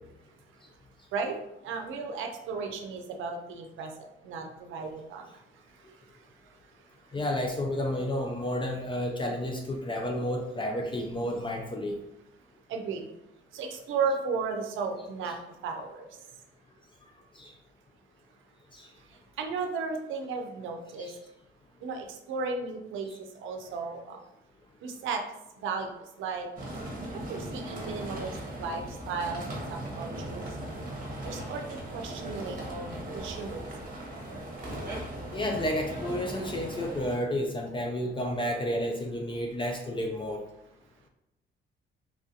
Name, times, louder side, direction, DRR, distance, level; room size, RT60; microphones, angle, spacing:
voice 1, 1.6-7.2 12.7-13.1 13.5-16.3 19.0-21.2 21.8-24.2 24.8-25.2 25.6-26.5 27.1-30.6 31.2-33.7, right 4 dB, 80° right, 4 dB, 0.5 m, -35 dB
voice 2, 7.1-12.0 17.4-17.5 18.7-18.9 21.0-21.1 35.3-40.5, left 1 dB, 25° left, 2 dB, 0.4 m, -31 dB
sound 1, 26.6-37.2, right 1 dB, 45° right, 0.9 m, -38 dB
3.4 x 2.4 x 2.7 m, 0.88 s
cardioid pair, 90°, 20 cm